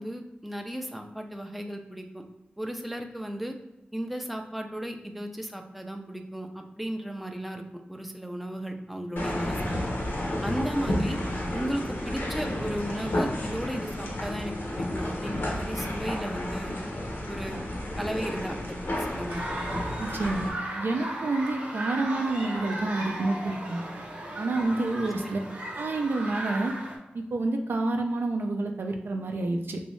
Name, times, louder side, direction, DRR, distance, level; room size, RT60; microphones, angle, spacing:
voice 1, 0.0-2.2 2.6-3.5 3.9-7.6 7.9-9.8 10.4-11.2 11.5-16.7 17.3-17.6 18.0-19.5 25.1-25.5, equal, ahead, 4 dB, 0.4 m, -35 dB
sound 1, 9.2-20.5, left 1 dB, 70° left, 0.7 m, -31 dB
sound 2, 19.3-27.0, right 1 dB, 45° right, 0.8 m, -36 dB
voice 2, 20.0-20.5 20.8-23.8 24.4-25.4 25.8-26.7 27.1-29.8, right 2 dB, 75° right, 4 dB, 0.4 m, -28 dB
3.1 x 2.6 x 3.1 m, 0.96 s
wide cardioid pair, 95°, 4 cm